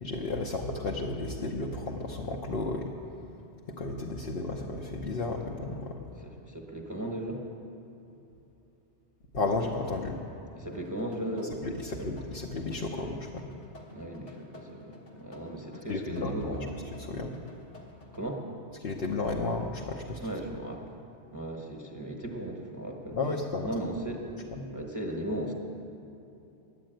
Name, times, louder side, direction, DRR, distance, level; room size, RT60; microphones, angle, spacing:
voice 1, 0.0-2.9 3.8-6.0 9.3-10.2 11.6-13.3 15.9-16.3 17.1-17.3 18.8-20.2 23.2-23.7 24.6-24.7, left 3 dB, 55° left, 0 dB, 1.0 m, -33 dB
voice 2, 6.2-7.4 10.5-12.1 13.9-16.7 18.1-18.4 20.2-20.9 21.3-23.2 23.6-24.2 24.6-25.5, right 1 dB, 15° right, 0 dB, 1.1 m, -37 dB
sound 1, 10.7-18.2, left 3 dB, 80° left, 1.9 m, -51 dB
11.5 x 8.8 x 9.0 m, 2.9 s
omnidirectional pair, 1.2 m